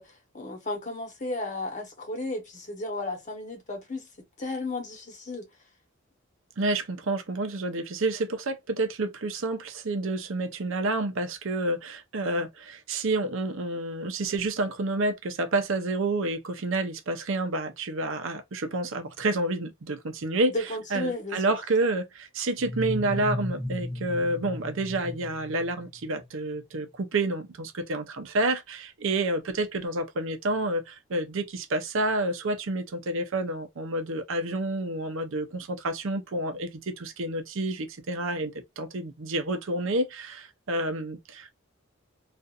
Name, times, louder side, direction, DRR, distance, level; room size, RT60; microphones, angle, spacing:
voice 1, 0.0-4.1 4.4-5.4 20.5-21.6, left 2 dB, 40° left, 1.1 m, -34 dB
voice 2, 6.6-20.5 20.9-41.5, right 2 dB, 70° right, 0.6 m, -29 dB
sound 1, 22.6-26.3, left 1 dB, ahead, 0.8 m, -35 dB
2.5 x 2.5 x 2.3 m
head